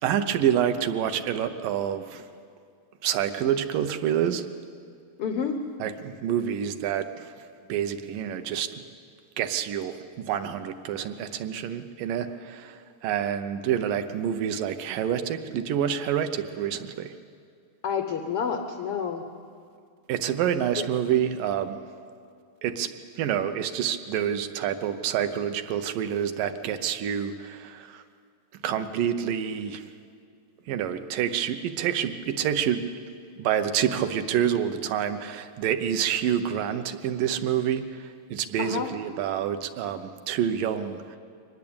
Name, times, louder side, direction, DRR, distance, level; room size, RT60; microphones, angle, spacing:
voice 1, 0.0-2.2 3.0-4.5 5.8-7.3 7.7-8.7 9.4-12.8 13.0-17.1 20.1-21.8 22.6-28.0 28.6-29.8 30.7-32.8 33.4-41.0, right 9 dB, 75° right, 9 dB, 2.4 m, -27 dB
voice 2, 5.2-5.6 17.8-19.2 20.8-20.9 38.6-38.9, left 6 dB, 85° left, 6 dB, 1.2 m, -29 dB
23.5 x 19.5 x 8.7 m, 2.3 s
omnidirectional pair, 4.1 m